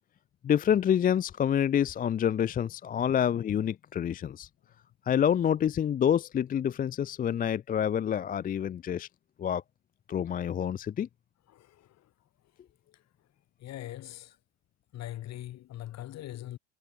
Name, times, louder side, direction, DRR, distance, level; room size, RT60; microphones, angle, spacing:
voice 1, 0.4-4.5 5.1-9.1 9.4-9.6 10.1-11.1, left 9 dB, 30° left, 0.4 m, -27 dB
voice 2, 11.5-12.1 12.9-13.0 13.6-14.3 14.9-16.6, left 14 dB, 60° left, 3.4 m, -42 dB
supercardioid pair, 80°, 30 cm